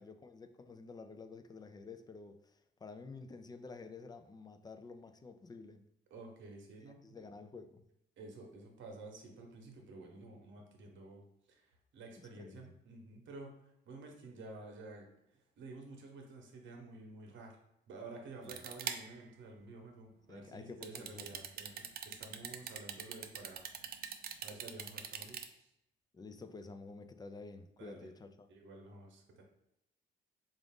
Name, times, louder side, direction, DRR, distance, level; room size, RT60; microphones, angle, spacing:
voice 1, 0.0-5.8 7.0-7.8 12.3-12.8 18.4-18.6 20.3-21.4 26.1-28.5, left 4 dB, 20° left, 9 dB, 0.3 m, -50 dB
voice 2, 6.1-7.3 8.2-11.6 11.9-13.5 13.8-15.0 15.3-17.5 17.9-23.6 24.2-25.7 27.8-28.1 28.5-29.4, right 2 dB, 70° right, 2 dB, 0.9 m, -51 dB
sound 1, 18.5-19.2 20.8-25.4, right 8 dB, 50° right, 0.4 m, -42 dB
3.7 x 2.5 x 3.6 m, 0.81 s
cardioid pair, 90°, 20 cm